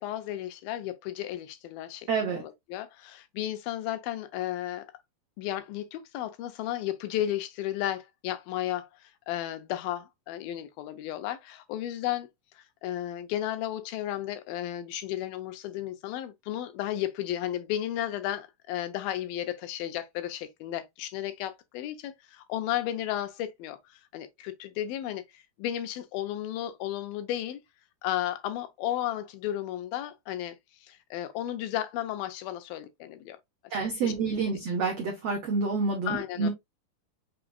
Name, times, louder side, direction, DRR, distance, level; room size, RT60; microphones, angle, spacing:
voice 1, 0.0-4.9 5.4-12.3 12.5-27.6 28.0-30.6 30.8-33.4 34.0-34.1 36.1-36.5, left 12 dB, 80° left, 2.3 m, -34 dB
voice 2, 2.1-2.4 33.7-36.5, right 4 dB, 85° right, 1.4 m, -28 dB
5.9 x 3.8 x 2.2 m
omnidirectional pair, 4.4 m